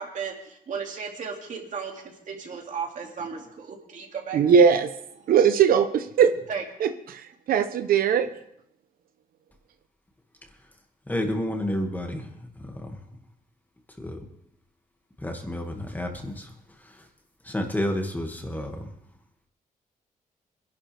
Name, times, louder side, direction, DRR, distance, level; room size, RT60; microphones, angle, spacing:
voice 1, 0.0-4.7 6.5-6.6, right 6 dB, 60° right, 2.4 m, -35 dB
voice 2, 4.3-4.9 5.3-6.3 6.8-8.3, right 7 dB, 85° right, 0.7 m, -20 dB
voice 3, 11.1-12.3 12.6-13.0 14.0-14.2 15.2-16.5 16.8-17.0 17.4-18.9, left 1 dB, 10° left, 2.0 m, -30 dB
24.5 x 11.5 x 3.4 m
wide cardioid pair, 130°, 15 cm